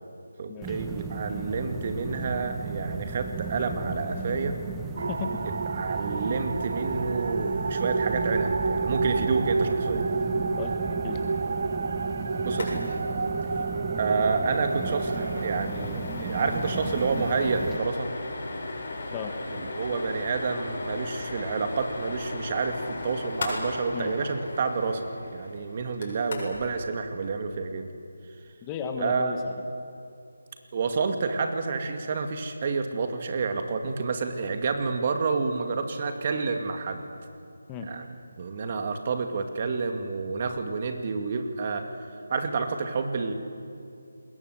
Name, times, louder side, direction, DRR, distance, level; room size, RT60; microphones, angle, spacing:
voice 1, 0.4-4.6 5.7-10.1 12.5-12.9 14.0-18.1 19.5-25.0 25.3-27.9 29.0-29.3 30.7-37.0 37.8-38.0 38.4-41.9 42.3-43.3, right 4 dB, 35° right, 6 dB, 2.2 m, -29 dB
sound 1, 0.6-17.8, right 4 dB, 10° right, 1.1 m, -36 dB
sound 2, 5.0-15.6, right 4 dB, 55° right, 0.7 m, -29 dB
voice 2, 5.1-5.4 10.6-11.2 13.6-13.7 19.1-19.3 23.9-24.1 28.6-29.4 37.7-37.9, left 6 dB, 15° left, 4 dB, 1.5 m, -34 dB
sound 3, 12.5-12.7 13.0-13.1 13.4-13.6 14.0-26.7, left 2 dB, 45° left, 7.5 m, -36 dB
27.5 x 21.5 x 8.0 m, 2.5 s
figure-of-eight pair, 160°, 0 cm